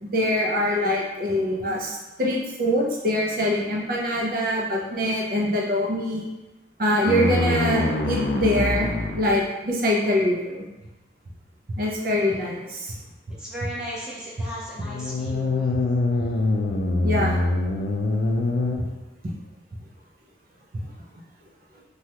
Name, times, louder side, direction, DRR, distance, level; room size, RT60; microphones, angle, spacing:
voice 1, 0.0-6.2 6.8-8.9 9.1-10.6 11.8-12.9 17.0-17.4, left 1 dB, 50° right, -3 dB, 0.5 m, -24 dB
sound 1, 7.0-9.4 14.8-18.8, left 2 dB, 70° left, 0.4 m, -24 dB
voice 2, 13.4-15.7, equal, 5° right, -7 dB, 0.5 m, -36 dB
3.2 x 2.3 x 2.8 m, 1.1 s
head